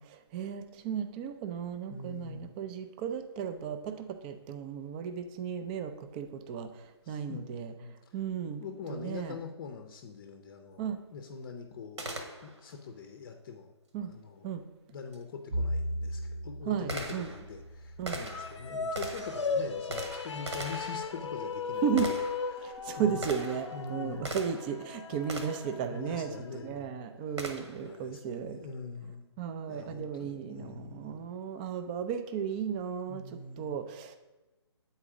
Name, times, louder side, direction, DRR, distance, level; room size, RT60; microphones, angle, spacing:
voice 1, 0.0-7.7 8.1-8.6 8.9-9.4 10.8-11.0 13.9-14.1 14.4-14.6 16.7-17.3 18.0-18.2 21.8-22.1 22.6-26.3 26.6-28.6 29.4-33.2 33.6-34.2, right 7 dB, 20° right, 9 dB, 0.4 m, -35 dB
voice 2, 1.9-2.5 7.0-7.4 7.6-7.9 8.6-12.1 12.4-13.7 14.1-14.5 14.9-21.9 22.5-23.3 23.7-24.4 25.8-26.9 27.8-29.2 29.7-31.3 33.1-33.8, left 5 dB, 40° left, 5 dB, 0.6 m, -43 dB
Gunshot gunfire, 12.0-12.8 15.1-15.2 15.9-24.8 25.3-25.8 27.4-27.9, right 1 dB, 80° right, 1.4 m, -41 dB
Bowed string instrument, 15.5-19.9, equal, 60° right, 0.9 m, -38 dB
sound 1, 18.2-26.7, left 5 dB, 85° left, 0.6 m, -37 dB
8.8 x 4.2 x 4.8 m, 1.1 s
hypercardioid pair, 145°, 15 cm